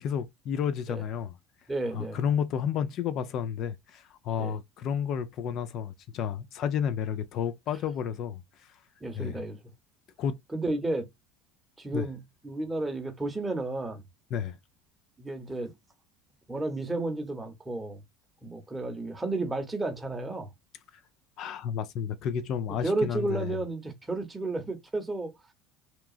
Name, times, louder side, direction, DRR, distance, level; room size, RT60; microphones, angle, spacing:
voice 1, 0.0-1.3 1.9-8.8 9.2-9.4 10.2-10.4 11.9-12.1 14.3-14.6 21.4-23.6, left 8 dB, 50° left, 0.4 m, -31 dB
voice 2, 1.7-2.2 4.4-4.5 9.0-9.6 10.5-11.1 11.8-12.2 12.4-14.0 15.2-15.7 16.5-18.0 18.4-20.5 22.8-25.3, right 2 dB, 10° right, 0.8 m, -32 dB
2.8 x 2.3 x 2.3 m
supercardioid pair, 115°, 0 cm